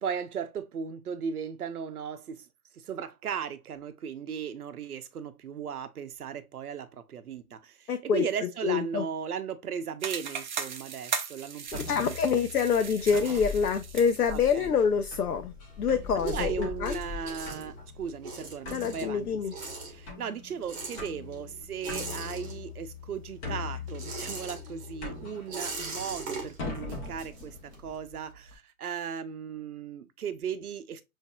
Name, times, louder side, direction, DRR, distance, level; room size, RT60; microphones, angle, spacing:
voice 1, 0.0-2.5 2.7-12.2 14.3-14.7 16.3-19.4 19.9-31.0, right 7 dB, 80° right, 0.7 m, -36 dB
voice 2, 7.9-9.0 11.9-17.0 18.7-19.5, left 6 dB, 80° left, 0.7 m, -26 dB
sound 1, 10.0-14.6, right 6 dB, 35° right, 0.5 m, -38 dB
sound 2, 11.7-28.5, left 5 dB, 15° left, 0.8 m, -42 dB
sound 3, 13.9-15.4 15.8-23.0 23.3-28.0, right 3 dB, 15° right, 1.1 m, -41 dB
5.6 x 2.7 x 2.2 m
hypercardioid pair, 135°, 44 cm